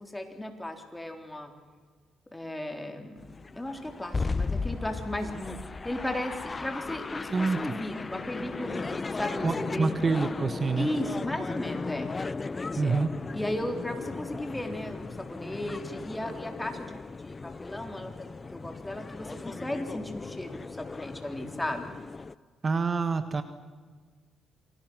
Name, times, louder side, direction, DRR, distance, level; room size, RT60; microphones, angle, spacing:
voice 1, 0.0-1.5 2.3-3.2 3.5-9.9 10.8-12.1 12.8-13.0 13.3-21.9, left 1 dB, 10° left, 4 dB, 3.8 m, -35 dB
sound 1, 3.2-22.3, left 3 dB, 30° left, 0.6 m, -36 dB
voice 2, 9.4-10.9 12.8-13.1 22.6-23.4, right 4 dB, 35° right, 9 dB, 1.5 m, -26 dB
28.0 x 23.5 x 6.3 m, 1.5 s
cardioid pair, 90°, 0 cm